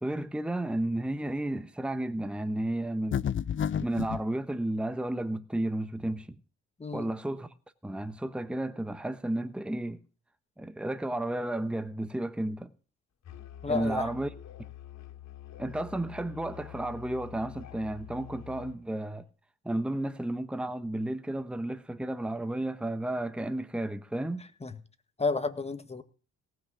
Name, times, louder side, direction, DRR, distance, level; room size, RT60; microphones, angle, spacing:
voice 1, 0.0-3.3 3.8-6.4 6.9-7.5 7.8-10.0 10.6-12.7 13.7-14.3 15.6-19.2 19.6-24.4, right 1 dB, 5° right, 1.0 m, -32 dB
sound 1, 3.1-4.2, left 8 dB, 40° left, 0.6 m, -30 dB
Musical instrument, 13.2-18.8, left 12 dB, 60° left, 2.7 m, -47 dB
voice 2, 13.6-14.1 24.6-24.7 25.2-26.0, left 4 dB, 20° left, 1.7 m, -31 dB
18.0 x 6.3 x 8.3 m
cardioid pair, 90°, 30 cm